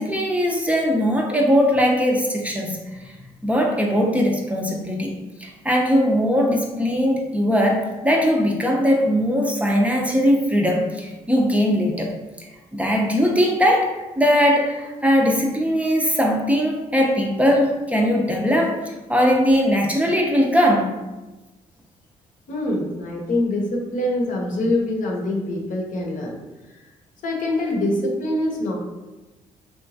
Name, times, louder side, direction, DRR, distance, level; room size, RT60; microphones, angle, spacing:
voice 1, 0.0-2.8 3.4-5.1 5.4-12.1 12.7-21.0, equal, 10° right, -1 dB, 0.4 m, -20 dB
voice 2, 22.5-26.4 26.7-26.8 27.2-28.8, left 1 dB, 65° left, -1 dB, 0.7 m, -24 dB
2.9 x 2.2 x 2.6 m, 1.1 s
supercardioid pair, 70°, 15 cm